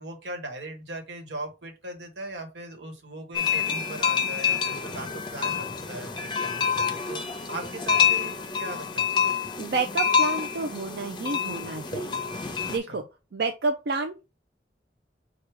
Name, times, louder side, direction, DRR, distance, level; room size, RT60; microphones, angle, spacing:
voice 1, 0.0-7.2 7.5-9.3 12.7-13.0, right 2 dB, 85° right, 1.3 m, -39 dB
sound 1, 3.3-12.8, left 6 dB, 25° left, 0.6 m, -27 dB
voice 2, 9.6-13.0 13.3-14.3, right 3 dB, 60° right, 0.4 m, -30 dB
4.7 x 2.3 x 4.7 m
head